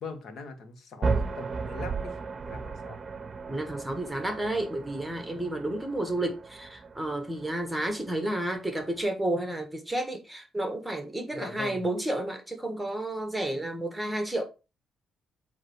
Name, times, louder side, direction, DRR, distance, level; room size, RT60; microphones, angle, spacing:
voice 1, 0.0-2.2 2.4-3.0 11.3-11.9, left 4 dB, 65° left, 1.7 m, -41 dB
sound 1, 1.0-9.0, right 4 dB, 35° right, 0.8 m, -36 dB
voice 2, 3.5-14.4, right 1 dB, 5° right, 1.7 m, -31 dB
8.1 x 3.2 x 6.4 m
cardioid pair, 90°, 0 cm